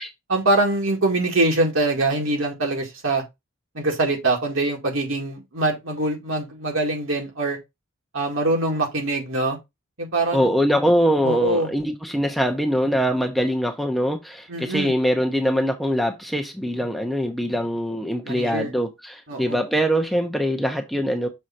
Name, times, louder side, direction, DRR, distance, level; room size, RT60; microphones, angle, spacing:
voice 1, 0.3-3.2 3.7-7.6 8.1-9.6 10.0-10.5 11.2-11.7 14.5-15.0 18.3-18.7 19.3-19.6, right 2 dB, 65° right, 1.9 m, -23 dB
voice 2, 10.3-21.3, equal, ahead, 0.7 m, -23 dB
6.5 x 3.7 x 4.3 m
head